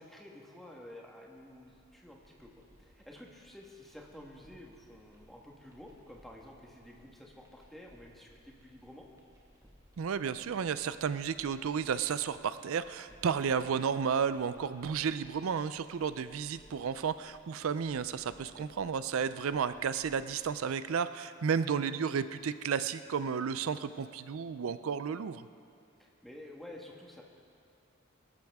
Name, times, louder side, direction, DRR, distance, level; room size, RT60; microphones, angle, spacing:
voice 1, 0.0-9.1 13.1-13.4 18.4-18.7 26.0-27.2, left 1 dB, ahead, -1 dB, 1.4 m, -51 dB
sound 1, 1.3-20.5, equal, 15° right, 1.6 m, -63 dB
voice 2, 10.0-25.5, right 6 dB, 90° right, 13 dB, 0.4 m, -32 dB
21.5 x 13.5 x 3.5 m, 2.4 s
head